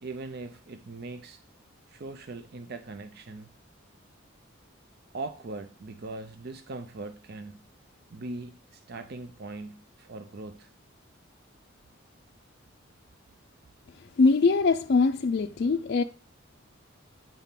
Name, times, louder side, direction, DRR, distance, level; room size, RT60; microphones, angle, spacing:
voice 1, 0.0-1.4 1.9-3.5 5.1-7.6 8.1-10.7, right 3 dB, 55° right, 0.5 m, -40 dB
voice 2, 14.2-16.0, left 4 dB, 55° left, 0.4 m, -22 dB
8.9 x 3.7 x 5.6 m
head